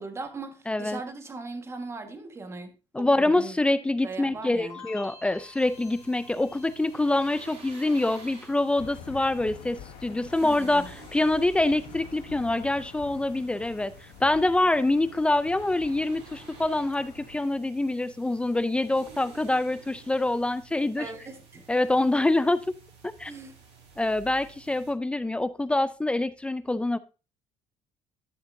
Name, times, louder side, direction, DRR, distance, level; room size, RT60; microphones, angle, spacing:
voice 1, 0.0-2.7 3.0-3.5 4.0-4.8 10.4-10.9 21.0-21.6 23.3-23.5, right 3 dB, 25° right, 1.5 m, -39 dB
voice 2, 0.7-1.0 2.9-21.1 21.7-22.8 23.2-23.3 24.0-27.0, left 2 dB, 10° left, 0.4 m, -25 dB
sound 1, 4.7-9.7 10.0-10.7, left 5 dB, 40° left, 3.3 m, -52 dB
sound 2, 5.6-24.9, right 5 dB, 75° right, 4.3 m, -51 dB
Aircraft / Engine, 8.8-17.3, left 8 dB, 85° left, 1.0 m, -47 dB
11.0 x 6.7 x 2.6 m
cardioid pair, 125°, 11 cm